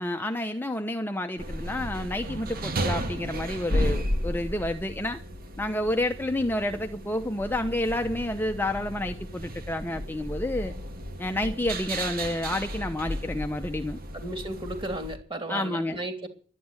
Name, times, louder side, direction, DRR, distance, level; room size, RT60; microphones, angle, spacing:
voice 1, 0.0-5.2 5.6-10.7 11.2-14.0 15.5-16.0, left 1 dB, 10° left, 0.7 m, -29 dB
sound 1, 1.4-15.2, equal, 45° right, 1.7 m, -34 dB
voice 2, 14.2-16.3, right 1 dB, 25° right, 3.1 m, -34 dB
11.5 x 9.9 x 9.7 m
head